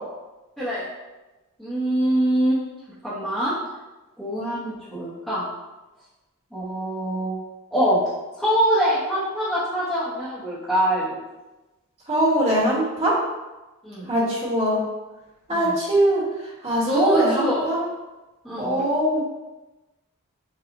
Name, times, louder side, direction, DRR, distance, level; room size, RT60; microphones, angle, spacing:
voice 1, 1.6-2.6 3.0-3.5 4.2-5.5 6.5-7.4 7.7-8.0 8.4-11.2 13.8-14.1 15.5-15.8 16.8-17.7 18.4-18.8, equal, ahead, -12 dB, 0.9 m, -24 dB
voice 2, 12.1-13.1 14.1-14.8 15.5-16.2 16.6-17.8 18.6-19.3, right 1 dB, 30° right, -8 dB, 1.5 m, -21 dB
5.6 x 2.4 x 2.6 m, 1.1 s
head